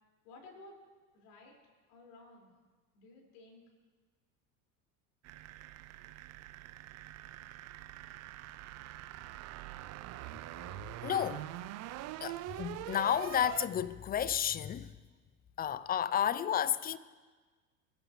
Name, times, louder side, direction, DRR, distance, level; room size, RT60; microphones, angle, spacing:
voice 1, 0.2-0.8 1.1-1.5 1.9-2.5 2.9-3.6, left 2 dB, 70° left, 5.0 m, -54 dB
sound 1, 5.2-13.7, right 15 dB, 40° right, 0.4 m, -44 dB
voice 2, 11.0-11.5 12.2-14.9 15.6-17.0, left 9 dB, 20° left, 0.4 m, -32 dB
22.0 x 11.5 x 3.1 m
hypercardioid pair, 85°, 44 cm